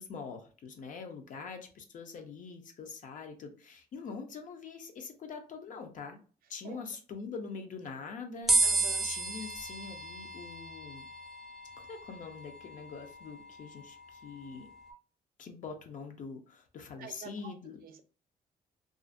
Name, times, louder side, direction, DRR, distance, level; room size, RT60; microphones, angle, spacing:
voice 1, 0.0-6.2 6.5-11.1 11.8-14.7 15.4-17.8, left 5 dB, 55° left, 5 dB, 0.5 m, -44 dB
sound 1, 8.5-14.9, right 2 dB, ahead, 0.4 m, -34 dB
voice 2, 8.6-9.1 17.0-17.5 17.8-18.0, right 6 dB, 65° right, 8 dB, 0.4 m, -46 dB
2.4 x 2.0 x 2.5 m, 0.38 s
cardioid pair, 150°, 16 cm